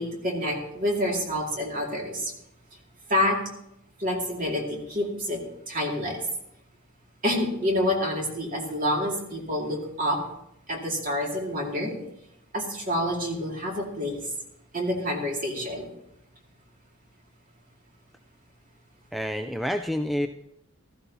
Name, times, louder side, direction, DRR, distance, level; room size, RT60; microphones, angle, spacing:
voice 1, 0.0-2.3 3.1-3.4 4.0-6.2 7.2-10.2 10.7-12.0 12.5-14.3 14.7-15.9, left 1 dB, 40° right, 0 dB, 2.3 m, -28 dB
voice 2, 19.1-20.3, equal, ahead, 6 dB, 0.3 m, -28 dB
15.0 x 14.0 x 2.8 m, 0.78 s
head